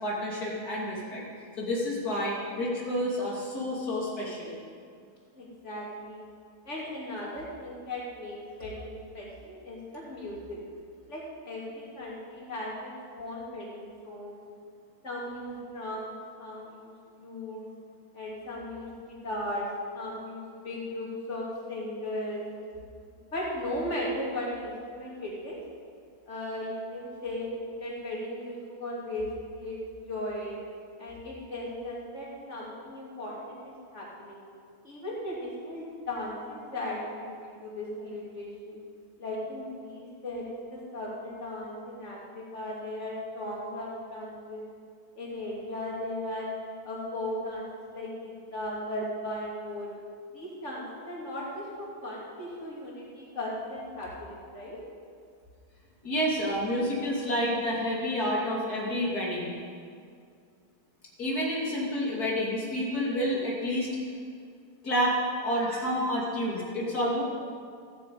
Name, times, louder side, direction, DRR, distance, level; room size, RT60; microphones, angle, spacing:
voice 1, 0.0-1.2 1.6-4.5 56.0-59.5 61.2-63.9 64.8-67.2, equal, 90° left, -4 dB, 3.3 m, -29 dB
voice 2, 5.3-6.3 6.7-10.6 11.1-14.4 15.0-16.9 17.2-17.6 18.1-19.7 19.9-22.4 23.3-25.6 26.3-27.5 27.8-29.8 30.1-30.6 31.0-34.4 34.8-38.8 39.2-44.6 45.2-46.5 46.8-49.9 50.3-54.8 65.6-65.8, left 1 dB, 50° left, -5 dB, 3.6 m, -37 dB
14.5 x 9.8 x 8.4 m, 2.2 s
omnidirectional pair, 1.6 m